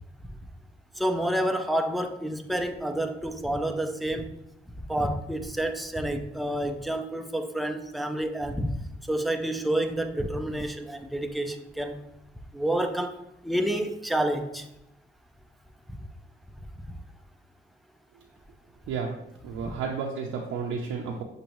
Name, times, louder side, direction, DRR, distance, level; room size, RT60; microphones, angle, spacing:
voice 1, 1.0-4.4 4.9-8.7 9.1-12.0 12.5-13.2 13.4-14.6 19.6-19.7, right 1 dB, ahead, 5 dB, 0.4 m, -29 dB
voice 2, 19.4-21.2, right 5 dB, 90° right, -1 dB, 0.6 m, -32 dB
6.3 x 2.6 x 3.0 m, 0.82 s
cardioid pair, 90°, 20 cm